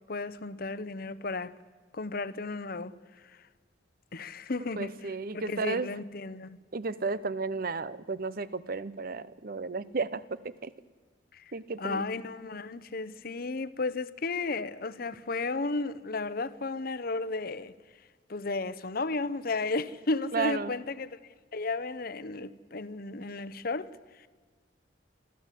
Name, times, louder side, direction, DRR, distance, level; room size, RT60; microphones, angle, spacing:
voice 1, 0.1-1.6 1.9-2.9 4.1-5.0 5.3-6.6 11.3-11.4 11.8-17.7 18.3-21.2 21.5-23.9, left 3 dB, 55° left, 0.8 m, -33 dB
voice 2, 4.8-5.9 6.7-10.7 11.5-12.0 20.3-20.7, right 4 dB, 55° right, 0.8 m, -33 dB
24.0 x 14.5 x 8.4 m
head